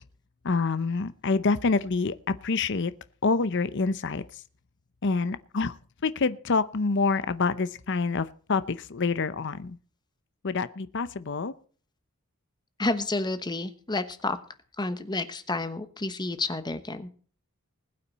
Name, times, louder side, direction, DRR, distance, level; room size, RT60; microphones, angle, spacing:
voice 1, 0.4-2.9 3.2-4.4 5.0-5.8 6.0-9.8 10.4-11.5, left 4 dB, 55° left, 14 dB, 0.7 m, -27 dB
voice 2, 12.8-14.4 14.8-17.1, left 2 dB, 20° left, 11 dB, 1.1 m, -30 dB
20.5 x 8.6 x 4.1 m, 0.43 s
head